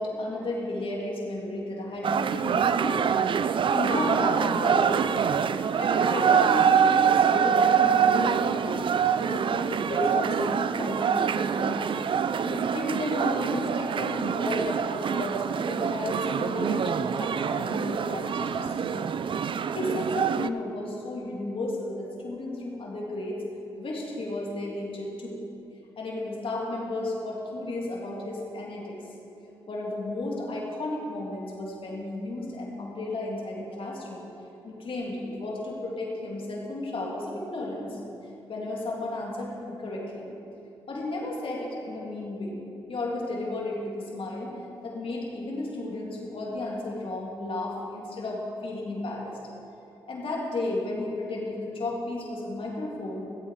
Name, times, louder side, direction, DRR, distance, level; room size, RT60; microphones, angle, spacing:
voice 1, 0.0-5.3 5.7-12.0 12.4-19.1 19.4-23.4 23.8-25.4 26.0-29.0 29.7-34.3 34.6-38.0 38.5-40.3 40.9-42.6 42.9-44.5 44.8-49.4 50.1-53.2, left 2 dB, 60° left, -3 dB, 2.8 m, -33 dB
sound 1, 2.0-20.5, right 7 dB, 55° right, 0.4 m, -25 dB
15.0 x 8.2 x 5.0 m, 2.8 s
supercardioid pair, 45°, 10 cm